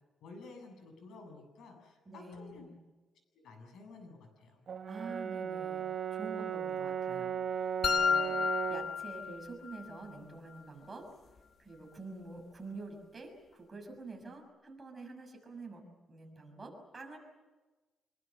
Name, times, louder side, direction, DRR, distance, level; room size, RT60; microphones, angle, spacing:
voice 1, 0.2-2.6 3.3-4.6, left 3 dB, 85° left, 4 dB, 7.9 m, -52 dB
voice 2, 2.0-2.8 4.9-11.1 11.6-15.8 16.1-17.2, right 3 dB, 20° right, 2 dB, 6.5 m, -47 dB
Brass instrument, 4.7-9.0, right 8 dB, 55° right, 1.3 m, -36 dB
sound 1, 7.8-9.8, left 7 dB, 55° left, 1.1 m, -31 dB
26.0 x 23.5 x 7.7 m, 1.2 s
cardioid pair, 125°, 0 cm